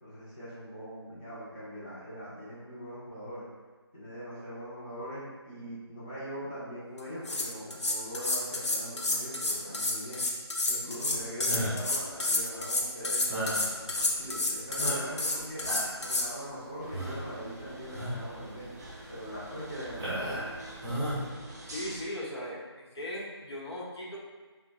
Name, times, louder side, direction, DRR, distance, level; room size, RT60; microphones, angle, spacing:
voice 1, 0.0-3.5 3.9-10.2 10.7-15.6 16.0-18.7 19.1-20.5, equal, 20° left, -12 dB, 0.7 m, -41 dB
sound 1, 7.0-16.3, left 2 dB, 85° left, 0.6 m, -30 dB
sound 2, 11.5-11.9 13.3-13.7 14.3-14.4 14.8-15.3 15.6-16.1 16.9-17.3 17.9-18.2 18.8-18.9 19.9-20.5 20.8-21.2, equal, 15° right, 0.8 m, -34 dB
sound 3, 16.8-22.0, right 1 dB, 40° right, 0.4 m, -46 dB
voice 2, 21.6-22.7 22.9-24.2, left 1 dB, 70° left, -5 dB, 1.1 m, -38 dB
2.8 x 2.2 x 4.0 m, 1.3 s
figure-of-eight pair, 170°, 14 cm